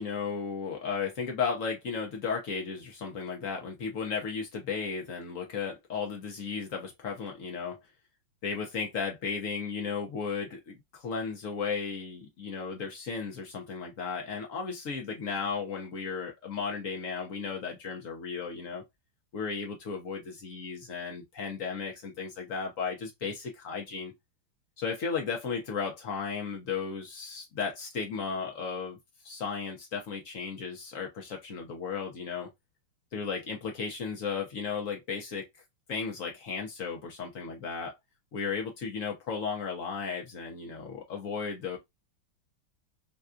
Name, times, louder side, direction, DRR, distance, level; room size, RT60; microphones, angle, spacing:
voice 1, 0.0-7.8 8.4-18.8 19.3-24.1 24.8-29.0 29.2-32.5 33.1-35.5 35.9-37.9 38.3-41.8, left 5 dB, 65° left, 0.8 m, -35 dB
4.1 x 2.3 x 2.4 m
omnidirectional pair, 2.4 m